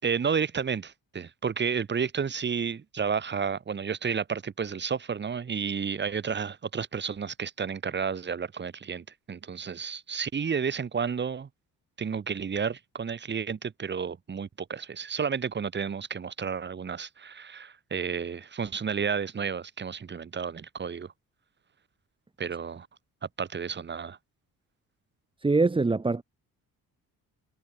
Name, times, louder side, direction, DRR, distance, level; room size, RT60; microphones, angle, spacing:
voice 1, 0.0-11.5 12.0-21.1 22.4-22.9 23.4-24.2, right 6 dB, 30° right, 6.4 m, -31 dB
voice 2, 25.4-26.2, right 3 dB, 15° right, 2.8 m, -23 dB
cardioid pair, 175°, 36 cm